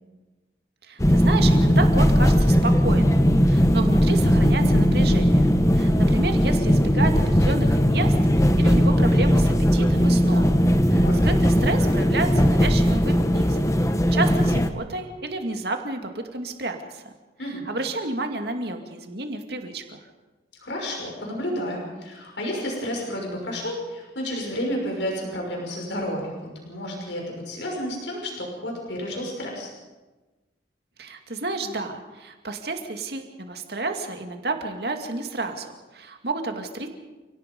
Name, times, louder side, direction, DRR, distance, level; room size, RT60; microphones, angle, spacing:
voice 1, 0.8-10.5 10.9-17.1 17.7-20.0 31.0-36.9, right 2 dB, 60° right, 5 dB, 2.3 m, -31 dB
sound 1, 1.0-14.7, equal, 15° left, 1.0 m, -18 dB
voice 2, 20.6-29.7, equal, 80° left, 0 dB, 5.7 m, -31 dB
29.5 x 18.0 x 5.4 m, 1.2 s
head